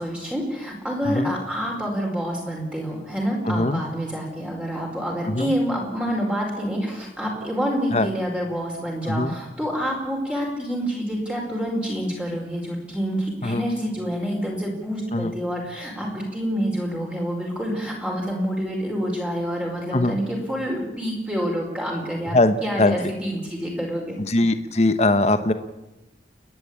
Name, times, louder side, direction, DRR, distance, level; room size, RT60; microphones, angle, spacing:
voice 1, 0.0-22.4 22.6-24.1, equal, 5° right, -2 dB, 4.9 m, -27 dB
voice 2, 3.4-3.8 5.3-5.5 7.9-8.1 9.1-9.3 13.4-13.6 15.1-15.3 19.9-20.2 22.3-22.9 24.3-25.5, left 2 dB, 35° left, 10 dB, 1.1 m, -21 dB
30.0 x 11.0 x 8.7 m, 0.99 s
head